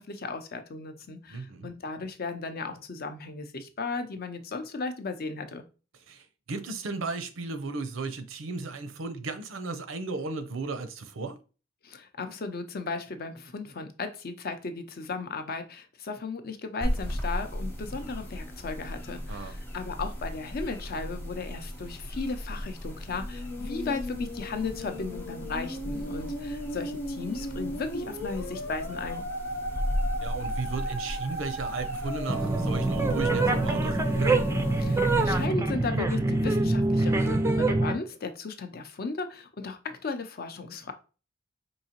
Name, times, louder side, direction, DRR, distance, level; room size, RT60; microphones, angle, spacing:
voice 1, 0.0-5.6 11.8-29.2 34.8-40.9, left 4 dB, 50° left, 0.6 m, -36 dB
voice 2, 1.3-1.7 6.1-11.4 19.3-19.5 26.2-26.3 30.2-34.4, right 3 dB, 90° right, 0.6 m, -35 dB
sound 1, 16.8-35.5, equal, 10° left, 0.7 m, -37 dB
Musical instrument, 23.0-36.4, equal, 75° left, 1.0 m, -37 dB
sound 2, 32.3-37.9, right 2 dB, 15° right, 0.3 m, -25 dB
4.7 x 2.8 x 2.8 m
head